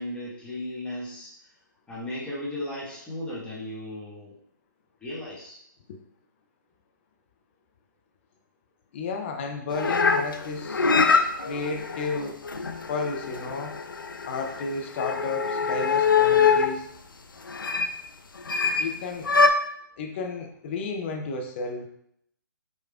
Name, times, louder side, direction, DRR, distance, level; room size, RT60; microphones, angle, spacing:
voice 1, 0.0-1.3 1.9-4.4 5.0-5.6, left 1 dB, 10° left, -7 dB, 1.0 m, -36 dB
voice 2, 8.9-10.9 11.5-12.4 12.9-13.7 14.3-16.9 18.8-19.4 20.0-21.9, left 4 dB, 35° left, 4 dB, 0.6 m, -32 dB
sound 1, 9.7-16.8 17.5-17.9 18.5-18.9 19.2-19.5, left 5 dB, 90° left, 0.4 m, -24 dB
5.0 x 3.1 x 2.3 m, 0.71 s
figure-of-eight pair, 140°, 11 cm